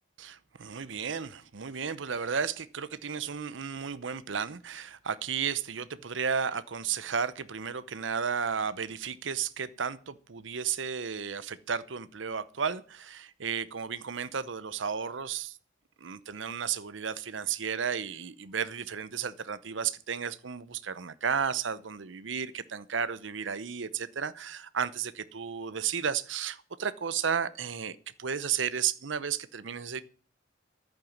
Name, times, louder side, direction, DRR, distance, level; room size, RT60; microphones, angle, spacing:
voice 1, 0.2-15.6 16.0-30.0, right 7 dB, 70° right, 0.7 m, -33 dB
11.0 x 9.0 x 7.2 m
head